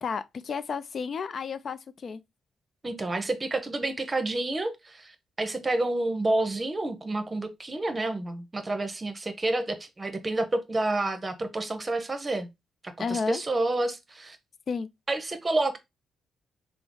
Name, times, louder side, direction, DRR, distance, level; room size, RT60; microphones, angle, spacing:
voice 1, 0.0-2.2 13.0-13.4 14.7-14.9, left 5 dB, 55° left, 0.3 m, -32 dB
voice 2, 2.8-12.5 12.8-14.4 15.1-15.8, right 2 dB, 30° right, 0.7 m, -29 dB
3.4 x 2.0 x 3.7 m
supercardioid pair, 55°, 0 cm